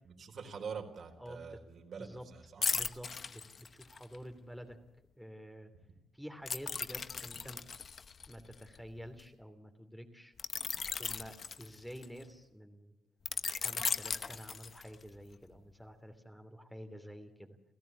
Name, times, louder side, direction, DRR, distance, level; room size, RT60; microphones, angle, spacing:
voice 1, 0.1-2.6, right 6 dB, 55° right, 4 dB, 4.3 m, -45 dB
voice 2, 1.2-1.6 2.0-2.2 2.7-4.8 5.2-5.7 6.1-7.6 8.3-10.3 10.9-12.9 13.6-17.6, equal, ahead, 5 dB, 3.0 m, -49 dB
sound 1, 2.6-4.2 6.5-9.2 10.4-12.2 13.3-15.1 15.5-15.7, left 5 dB, 45° left, 0.9 m, -37 dB
28.5 x 15.5 x 8.3 m, 0.90 s
cardioid pair, 90°, 0 cm